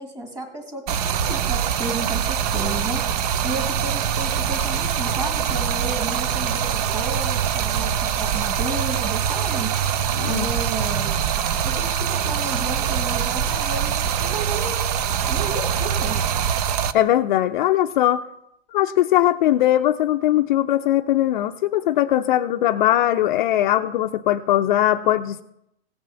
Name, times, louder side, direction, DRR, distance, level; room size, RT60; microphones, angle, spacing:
voice 1, 0.0-9.9 10.3-11.2 11.6-14.9 15.2-16.2, right 2 dB, 10° right, 3 dB, 1.9 m, -33 dB
Stream, 0.9-16.9, right 8 dB, 40° right, 0.6 m, -23 dB
voice 2, 10.2-10.5 16.9-18.2 18.7-25.4, left 13 dB, 50° left, 6 dB, 0.6 m, -20 dB
16.5 x 6.1 x 7.0 m, 0.78 s
hypercardioid pair, 150°, 31 cm